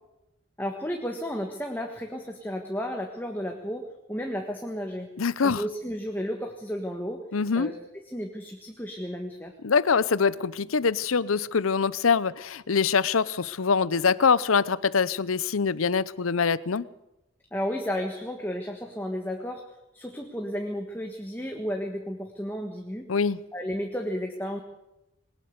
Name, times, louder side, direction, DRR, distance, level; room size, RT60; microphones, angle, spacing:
voice 1, 0.6-5.1 5.4-7.2 7.5-7.7 8.1-9.5 17.5-19.7 19.9-23.1 23.5-24.6, equal, 10° left, 1.6 m, -33 dB
voice 2, 5.2-5.6 7.3-7.7 9.6-16.8 23.1-23.4, left 5 dB, 90° left, 0.7 m, -24 dB
21.0 x 19.5 x 6.7 m
head